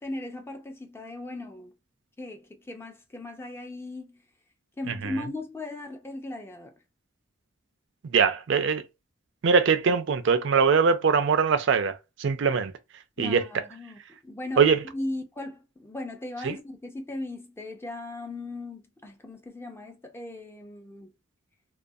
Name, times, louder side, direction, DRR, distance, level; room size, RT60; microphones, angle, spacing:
voice 1, 0.0-1.7 2.2-4.2 4.8-6.7 13.2-21.1, left 2 dB, 10° left, 0.4 m, -38 dB
voice 2, 8.0-8.8 9.4-12.7 13.2-13.4 14.6-14.8 16.4-16.5, right 5 dB, 60° right, 0.4 m, -22 dB
2.3 x 2.3 x 2.6 m
head